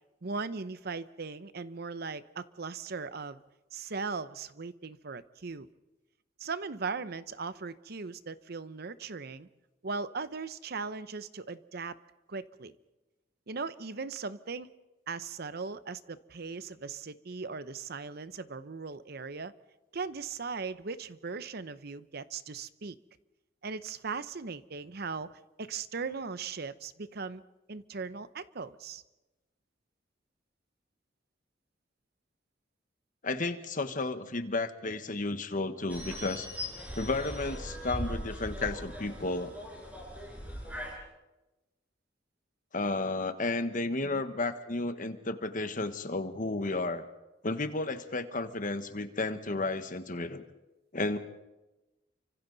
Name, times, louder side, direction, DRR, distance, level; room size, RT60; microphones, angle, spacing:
voice 1, 0.2-3.4 3.7-5.7 6.4-9.5 9.8-11.9 12.3-12.7 13.5-14.7 15.1-19.5 19.9-23.0 23.6-27.4 27.7-29.0 44.0-44.3, right 4 dB, 55° right, 14 dB, 0.8 m, -38 dB
voice 2, 33.2-36.5 37.0-39.5 42.7-47.0 47.4-50.4 50.9-51.2, left 2 dB, 45° left, 9 dB, 1.4 m, -32 dB
sound 1, 35.9-40.9, equal, 10° right, 5.3 m, -39 dB
29.5 x 25.5 x 4.1 m, 1.0 s
head